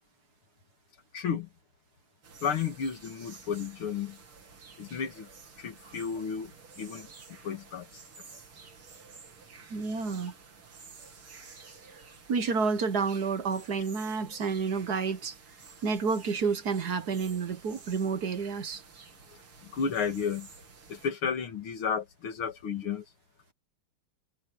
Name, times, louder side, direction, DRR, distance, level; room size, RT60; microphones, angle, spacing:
voice 1, 1.1-1.5 2.4-4.2 4.8-5.3 5.6-6.5 6.8-7.1 7.4-7.9 19.6-20.5 20.9-23.0, left 6 dB, 85° left, 2.7 m, -32 dB
sound 1, 2.2-21.1, right 5 dB, 85° right, 3.6 m, -52 dB
voice 2, 9.7-10.3 12.3-15.3 15.8-18.8, right 5 dB, 55° right, 1.5 m, -30 dB
omnidirectional pair, 2.3 m